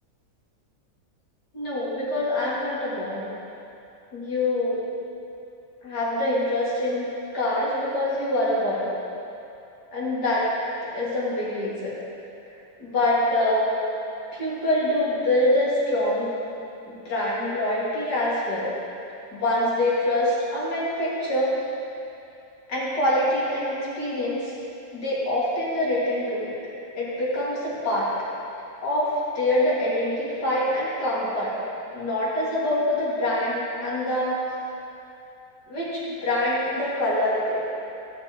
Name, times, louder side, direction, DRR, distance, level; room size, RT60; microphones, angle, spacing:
voice 1, 1.5-3.3 4.1-4.8 5.8-8.9 9.9-10.5 10.9-12.0 12.8-13.6 14.3-16.4 16.9-18.7 19.3-21.5 22.7-24.5 24.9-26.5 27.0-28.1 28.8-31.5 31.9-34.4 35.7-37.6, left 1 dB, 65° left, -7 dB, 2.6 m, -25 dB
15.0 x 6.8 x 2.9 m, 2.7 s
omnidirectional pair, 1.9 m